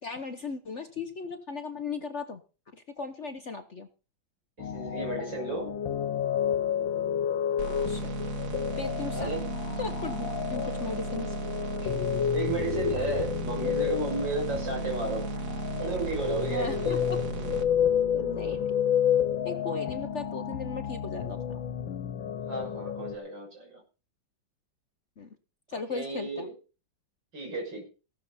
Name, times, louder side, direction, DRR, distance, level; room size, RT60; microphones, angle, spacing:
voice 1, 0.0-2.4 2.7-3.9 7.9-8.1 8.7-9.3 9.8-11.4 16.5-17.2 18.1-18.8 19.4-21.6 25.2-25.3 25.7-26.5, left 4 dB, 45° left, 8 dB, 1.1 m, -37 dB
sound 1, 4.6-23.2, left 9 dB, 85° left, 1.9 m, -30 dB
voice 2, 4.6-5.7 9.1-9.5 11.8-11.9 12.3-15.2 15.8-17.0 22.4-23.8 25.7-26.5 27.3-27.9, right 2 dB, 70° right, 1 dB, 7.2 m, -33 dB
sound 2, 7.6-17.6, right 7 dB, 50° right, 1.3 m, -37 dB
15.5 x 13.0 x 4.3 m, 0.34 s
omnidirectional pair, 2.1 m